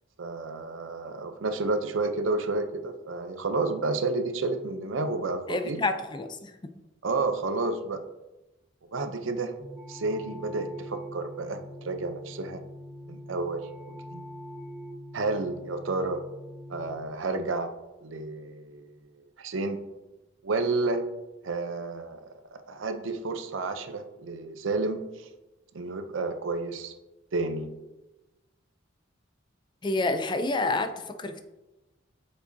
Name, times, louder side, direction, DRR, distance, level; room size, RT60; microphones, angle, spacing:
voice 1, 0.2-5.8 7.0-8.0 8.9-9.5 9.9-12.6 13.1-14.2 15.1-16.2 16.7-17.7 18.0-19.0 19.4-19.8 20.4-21.1 21.4-22.2 22.5-25.3 25.7-26.9 27.3-27.7, right 3 dB, 85° right, 8 dB, 0.6 m, -30 dB
voice 2, 5.5-6.5 29.8-31.4, left 2 dB, 25° left, 9 dB, 0.4 m, -28 dB
sound 1, 9.6-17.0, equal, 15° right, 1.2 m, -43 dB
8.0 x 5.2 x 2.7 m, 1.0 s
head